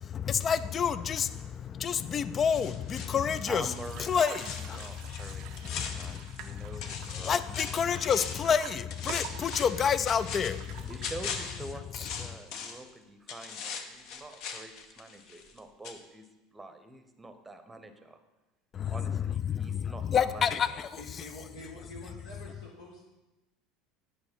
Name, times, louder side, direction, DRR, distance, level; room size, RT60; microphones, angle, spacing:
voice 1, 0.0-3.6 4.1-4.8 5.7-6.6 7.2-10.9 18.7-20.9, left 7 dB, 30° left, 15 dB, 0.4 m, -29 dB
sound 1, 2.5-6.5 6.8-8.5 8.9-12.9 13.3-15.6 15.8-16.0, left 6 dB, 50° left, 0.8 m, -40 dB
voice 2, 3.5-7.4 10.9-16.2 16.5-18.2 18.9-20.8, right 2 dB, 10° right, 8 dB, 0.8 m, -46 dB
sound 2, 3.8-11.5, right 11 dB, 50° right, 0.4 m, -48 dB
voice 3, 21.0-23.0, left 1 dB, 70° left, -4 dB, 1.2 m, -47 dB
9.8 x 4.9 x 4.4 m, 1.0 s
figure-of-eight pair, 70°, 0 cm